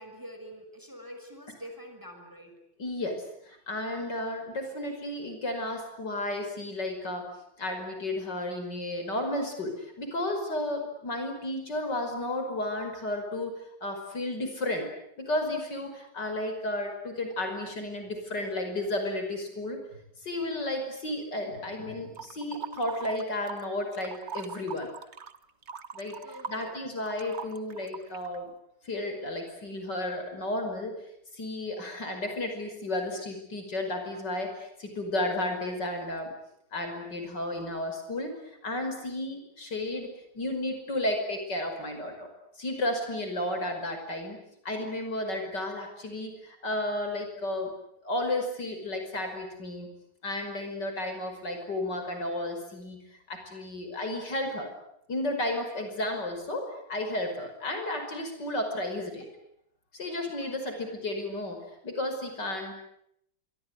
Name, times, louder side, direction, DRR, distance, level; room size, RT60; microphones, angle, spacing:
voice 1, 0.0-2.6 26.2-26.8 60.4-60.9, equal, 10° right, 5 dB, 5.8 m, -46 dB
voice 2, 2.8-7.3 7.6-14.9 15.2-19.8 20.2-24.9 25.9-26.2 26.5-28.5 28.8-30.9 31.3-36.3 36.7-38.3 38.6-42.3 42.6-47.7 48.0-49.9 50.2-53.0 53.3-54.7 55.1-59.3 59.9-62.7, left 1 dB, 65° left, 5 dB, 6.1 m, -33 dB
sound 1, 22.2-23.7 23.9-28.4, right 6 dB, 40° right, 1.3 m, -41 dB
26.5 x 23.5 x 9.5 m, 0.74 s
omnidirectional pair, 2.0 m